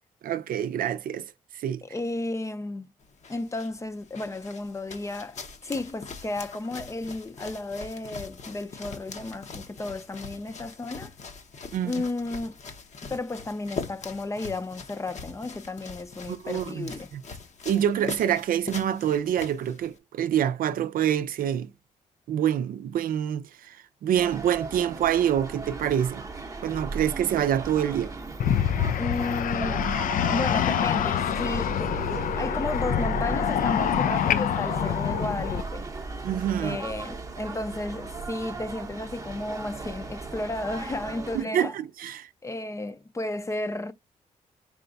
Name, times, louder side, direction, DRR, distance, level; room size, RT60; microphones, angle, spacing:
voice 1, 0.2-1.3 1.5-1.8 11.7-11.9 16.3-17.2 17.7-21.7 22.3-26.3 26.6-28.1 36.2-36.8 41.3-42.3, right 10 dB, 80° right, 0.5 m, -26 dB
voice 2, 1.8-2.9 3.3-11.1 11.8-12.6 13.0-17.1 29.0-29.9 30.3-32.1 32.4-35.9 36.6-41.8 42.4-43.9, left 2 dB, 20° left, 0.5 m, -33 dB
sound 1, 3.0-20.0, left 5 dB, 55° left, 0.9 m, -42 dB
sound 2, 24.1-41.4, right 3 dB, 25° right, 0.8 m, -36 dB
sound 3, 28.4-35.6, left 9 dB, 70° left, 0.4 m, -26 dB
4.9 x 2.2 x 3.9 m
cardioid pair, 105°, 14 cm